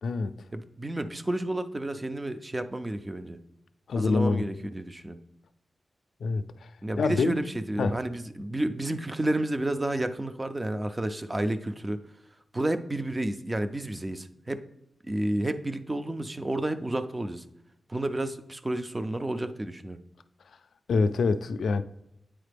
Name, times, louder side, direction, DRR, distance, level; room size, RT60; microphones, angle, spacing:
voice 1, 0.0-0.4 3.9-4.5 6.2-7.5 7.8-8.0 20.9-21.8, left 4 dB, 90° left, 0.3 m, -26 dB
voice 2, 0.5-3.4 4.0-5.2 6.8-12.0 12.5-14.6 15.0-17.4 17.9-20.0, right 1 dB, 20° right, 0.3 m, -31 dB
8.8 x 4.1 x 3.4 m
wide cardioid pair, 155°, 0 cm